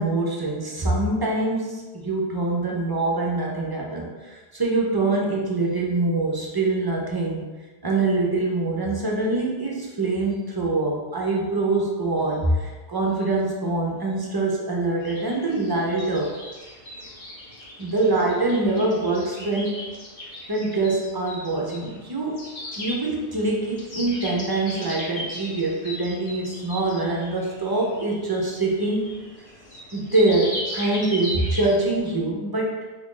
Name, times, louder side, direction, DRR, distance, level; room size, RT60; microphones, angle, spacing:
voice 1, 0.0-7.4 7.8-16.3 17.8-19.8 20.5-22.4 22.8-29.1 29.9-32.8, right 2 dB, 30° right, -2 dB, 0.4 m, -24 dB
sound 1, 15.0-32.1, equal, 35° left, 0.8 m, -38 dB
3.1 x 2.5 x 3.7 m, 1.3 s
omnidirectional pair, 1.0 m